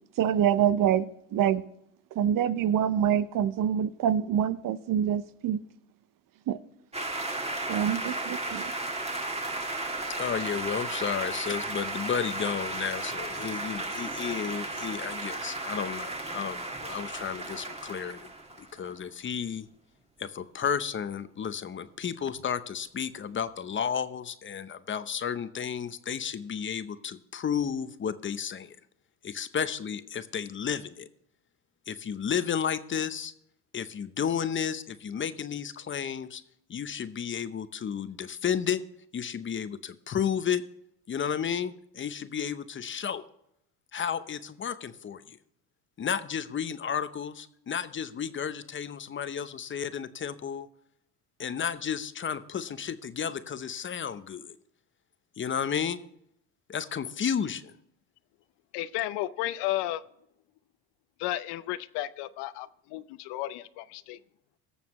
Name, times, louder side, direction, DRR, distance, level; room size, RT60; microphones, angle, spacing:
voice 1, 0.2-1.6 2.1-5.6 6.5-6.6 7.7-8.7, right 9 dB, 45° right, 15 dB, 0.7 m, -26 dB
sound 1, 6.9-18.9, right 2 dB, 15° right, 1.6 m, -34 dB
voice 2, 10.2-18.3 18.6-19.7 20.2-28.8 29.2-31.1 31.9-33.3 33.7-36.4 36.7-38.8 39.1-40.6 41.1-43.2 43.9-45.4 46.0-50.7 51.4-54.6 55.4-56.0 56.7-57.7, left 7 dB, 25° left, 13 dB, 0.7 m, -32 dB
voice 3, 58.7-60.0 61.2-64.2, left 15 dB, 65° left, 15 dB, 0.7 m, -33 dB
19.0 x 7.1 x 3.1 m, 0.75 s
supercardioid pair, 90°, 45 cm